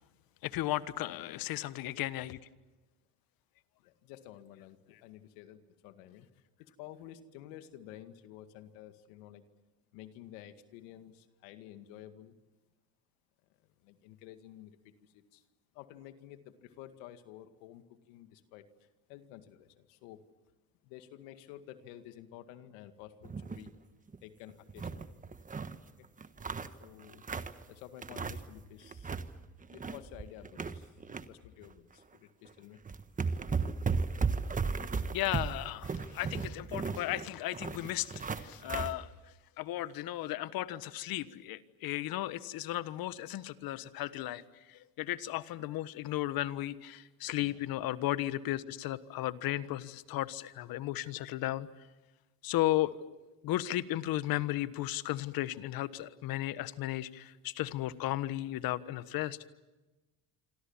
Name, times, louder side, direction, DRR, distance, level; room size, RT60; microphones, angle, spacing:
voice 1, 0.4-2.4 35.1-39.1 39.6-44.4 44.7-51.7 52.4-52.9 53.4-59.5, left 15 dB, 55° left, 14 dB, 1.4 m, -35 dB
voice 2, 1.0-1.7 3.8-6.3 6.6-9.4 9.9-12.4 13.6-15.4 15.7-20.2 20.8-23.7 24.2-25.2 25.9-26.1 26.7-27.2 27.7-29.1 29.7-32.8 47.4-47.6, left 12 dB, 80° left, 9 dB, 2.1 m, -52 dB
sound 1, 23.2-23.7 24.1-24.2 24.5-25.8 26.2-27.6 28.0-28.6 28.9-29.3 29.6-31.2 31.6-31.8 32.5-32.6 32.9-38.9, right 5 dB, 20° right, 1.4 m, -35 dB
27.0 x 26.5 x 7.3 m, 1.1 s
supercardioid pair, 110°, 41 cm